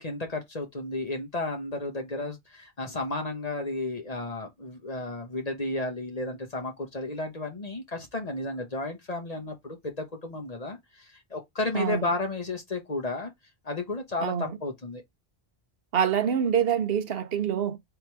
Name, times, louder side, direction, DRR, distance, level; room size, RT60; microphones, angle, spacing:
voice 1, 0.0-13.3 13.6-15.0, left 2 dB, 40° left, 1.1 m, -33 dB
voice 2, 11.7-12.1 14.2-14.6 15.9-17.8, right 8 dB, 65° right, 0.9 m, -26 dB
3.5 x 3.0 x 4.6 m
omnidirectional pair, 1.1 m